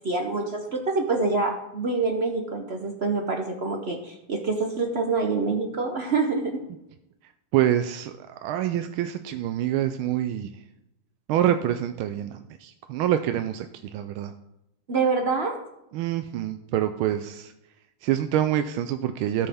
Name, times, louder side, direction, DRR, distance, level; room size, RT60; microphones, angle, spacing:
voice 1, 0.0-6.6 14.9-15.6, right 4 dB, 65° right, 3 dB, 0.6 m, -26 dB
voice 2, 7.5-10.6 11.3-14.3 15.9-17.5 18.0-19.5, right 11 dB, 80° right, 8 dB, 1.4 m, -26 dB
16.5 x 5.6 x 3.5 m, 0.87 s
omnidirectional pair, 2.3 m